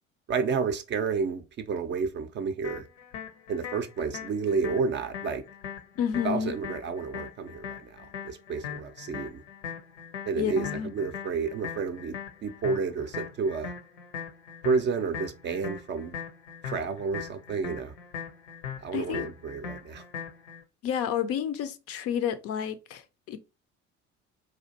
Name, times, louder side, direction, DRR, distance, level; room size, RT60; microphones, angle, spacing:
voice 1, 0.3-2.9 3.5-5.4 6.2-9.4 10.3-13.7 14.6-16.2 16.6-17.9 18.8-20.0, right 5 dB, 30° right, 0.5 m, -30 dB
sound 1, 2.6-20.6, left 7 dB, 75° left, 0.8 m, -40 dB
voice 2, 6.0-6.5 10.4-10.9 18.9-19.3 20.8-23.4, left 8 dB, 40° left, 0.5 m, -30 dB
4.2 x 2.4 x 2.7 m
figure-of-eight pair, 55°, 36 cm